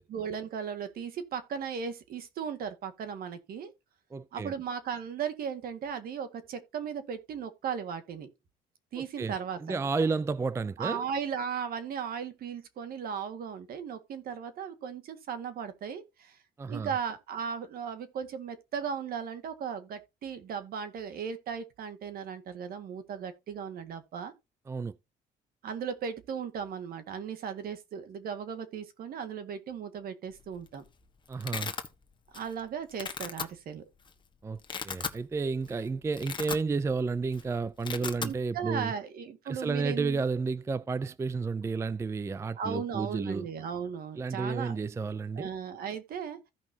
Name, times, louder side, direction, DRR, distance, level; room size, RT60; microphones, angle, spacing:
voice 1, 0.1-3.7 4.3-8.3 8.9-9.8 10.8-16.4 16.7-24.3 25.6-30.8 32.3-33.8 38.2-40.2 42.6-44.8 45.3-46.4, right 7 dB, 60° right, 1.9 m, -36 dB
voice 2, 4.1-4.5 9.0-9.3 9.6-11.0 16.6-16.9 24.7-24.9 31.3-31.7 34.4-38.9 39.5-43.5 44.2-45.5, right 4 dB, 15° right, 0.4 m, -31 dB
Domestic sounds home sounds, 30.4-30.7 31.0-31.9 32.3-32.6 32.9-33.4 34.1-34.2 34.5-35.2 35.6-35.7 36.0-37.0 37.2-37.4 37.7-38.3, left 5 dB, 30° left, 1.3 m, -36 dB
15.5 x 5.4 x 2.8 m
cardioid pair, 110°, 17 cm